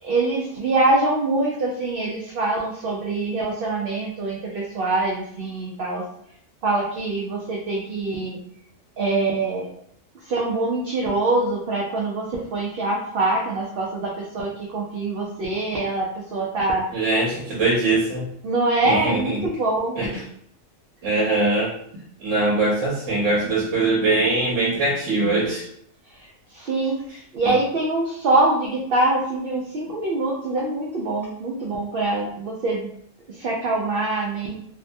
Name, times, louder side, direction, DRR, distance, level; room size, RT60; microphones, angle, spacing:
voice 1, 0.0-6.0 6.6-8.4 9.0-9.7 10.3-16.8 18.4-20.0 26.5-27.0 27.3-32.9 33.3-34.5, right 2 dB, 65° right, -3 dB, 0.6 m, -24 dB
voice 2, 16.9-18.3 18.8-19.5 20.0-20.1 21.0-21.7 22.2-25.6 27.4-27.5, right 2 dB, 80° right, -4 dB, 1.0 m, -22 dB
2.6 x 2.1 x 2.6 m, 0.66 s
omnidirectional pair, 1.3 m